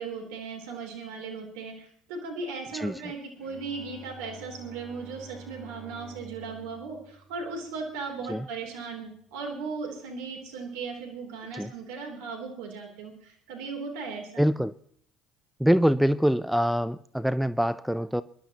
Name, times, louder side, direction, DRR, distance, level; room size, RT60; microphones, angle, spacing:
voice 1, 0.0-14.5, right 4 dB, 75° right, 2 dB, 3.4 m, -37 dB
Bowed string instrument, 3.4-9.1, right 1 dB, 30° right, 7.2 m, -50 dB
voice 2, 14.4-14.7 15.6-18.2, equal, ahead, 15 dB, 0.5 m, -24 dB
25.0 x 11.5 x 3.0 m, 0.65 s
hypercardioid pair, 70°, 0 cm